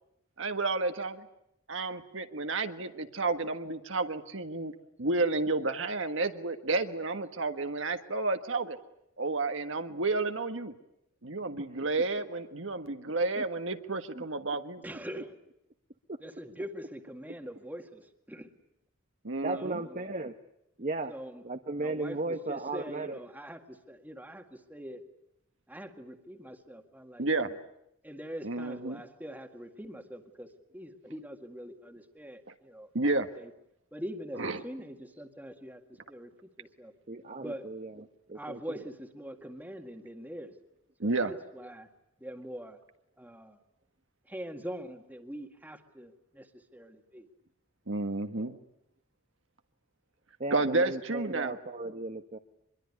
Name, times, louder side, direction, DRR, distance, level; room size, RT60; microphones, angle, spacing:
voice 1, 0.4-1.3 1.7-4.7 5.0-8.8 9.2-10.7 11.2-14.8 19.2-19.8 27.2-27.5 28.4-29.0 32.9-33.3 34.4-34.6 41.0-41.3 47.9-48.5 50.5-51.5, right 3 dB, 65° right, 7 dB, 1.6 m, -31 dB
voice 2, 14.8-15.3 16.2-18.5 19.5-20.0 21.1-21.4 21.8-25.0 25.7-27.5 28.0-30.5 30.7-32.9 33.4-33.5 33.9-35.8 36.1-36.3 36.6-36.9 37.4-37.7 38.3-40.5 41.0-41.9 42.2-42.8 43.2-43.6 44.3-47.3, equal, 10° right, 5 dB, 2.0 m, -43 dB
voice 3, 19.4-20.3 20.8-21.1 21.4-23.2 37.1-38.8 48.4-48.6 50.4-52.4, right 2 dB, 40° right, 6 dB, 1.1 m, -36 dB
24.5 x 22.0 x 9.7 m, 0.80 s
head